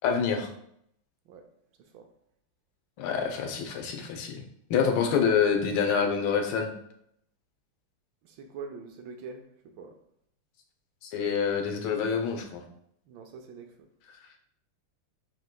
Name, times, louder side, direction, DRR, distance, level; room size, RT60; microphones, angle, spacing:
voice 1, 0.0-0.5 3.0-4.4 4.7-6.7 11.0-12.6, left 6 dB, 75° left, 1.5 m, -26 dB
voice 2, 8.2-10.0 13.1-13.7, right 5 dB, 75° right, 1.2 m, -44 dB
7.7 x 3.1 x 2.2 m
omnidirectional pair, 2.4 m